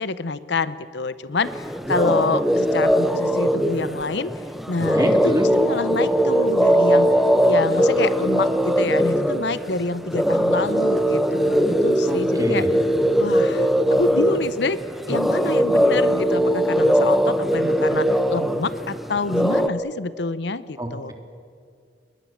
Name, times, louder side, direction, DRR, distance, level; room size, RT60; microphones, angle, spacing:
voice 1, 0.0-4.3 4.7-7.1 7.5-12.7 13.2-14.8 15.1-21.1, left 3 dB, 70° left, 14 dB, 0.8 m, -27 dB
sound 1, 1.4-19.7, equal, ahead, 1.0 m, -20 dB
voice 2, 4.8-5.4 12.0-12.7 20.8-21.1, equal, 20° right, 3 dB, 3.4 m, -27 dB
30.0 x 22.0 x 7.3 m, 2.2 s
head